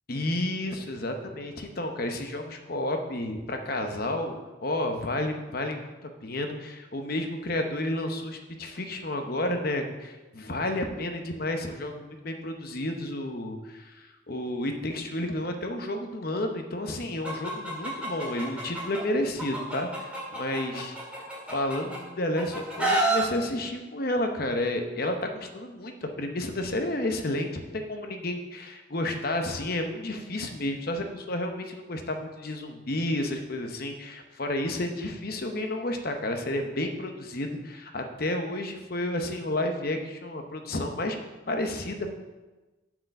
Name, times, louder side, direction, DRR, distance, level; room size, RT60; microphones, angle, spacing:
voice 1, 0.1-5.9 6.2-20.9 21.5-41.2 41.5-42.1, left 1 dB, 45° left, 5 dB, 0.9 m, -31 dB
Chicken rooster, 17.2-19.0 19.4-22.0 22.4-23.2, right 2 dB, 5° right, 1.8 m, -28 dB
7.6 x 4.9 x 6.5 m, 1.2 s
head